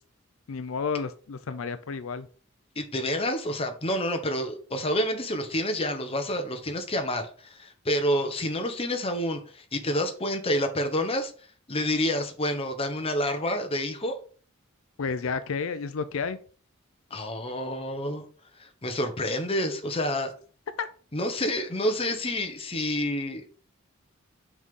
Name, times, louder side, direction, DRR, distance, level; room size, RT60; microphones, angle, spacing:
voice 1, 0.5-2.3 15.0-16.4 20.8-20.9, left 5 dB, 80° left, 11 dB, 0.5 m, -31 dB
voice 2, 2.8-11.3 11.7-14.2 17.1-18.2 18.6-20.3 21.1-23.6, left 1 dB, 30° left, 6 dB, 1.1 m, -28 dB
6.2 x 5.4 x 3.7 m, 0.41 s
head